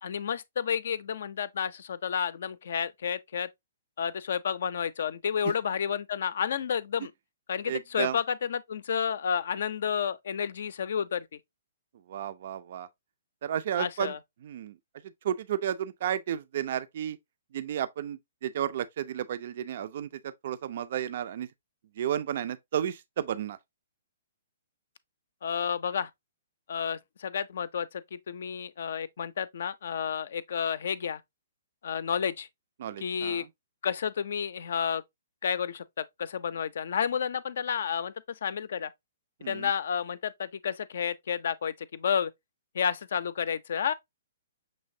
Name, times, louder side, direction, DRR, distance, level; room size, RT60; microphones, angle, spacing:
voice 1, 0.0-3.5 4.0-7.1 7.5-11.3 13.8-14.2 25.4-26.1 26.7-31.2 31.8-32.5 33.0-33.4 33.8-35.0 35.4-38.1 38.4-38.9 39.5-42.3 42.7-43.9, left 7 dB, 55° left, 0.4 m, -31 dB
voice 2, 7.6-8.2 12.1-12.9 13.4-14.1 14.4-14.8 15.0-17.2 17.5-21.5 22.0-23.6 32.8-33.5 39.4-39.7, right 10 dB, 50° right, 0.4 m, -32 dB
6.5 x 3.1 x 2.6 m
figure-of-eight pair, 120°, 0 cm